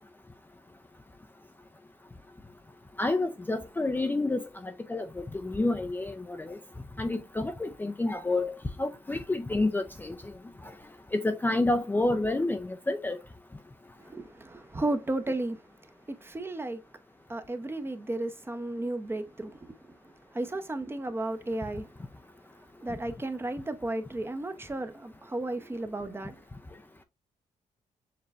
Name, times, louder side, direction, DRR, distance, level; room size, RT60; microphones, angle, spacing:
voice 1, 3.0-6.6 7.0-10.1 11.1-13.2, left 2 dB, 15° left, 0.5 m, -29 dB
voice 2, 14.0-15.6 16.1-16.8 17.3-19.7 20.3-21.9 22.8-26.3, right 2 dB, 15° right, 0.8 m, -33 dB
6.7 x 3.1 x 2.4 m
cardioid pair, 90°, 13 cm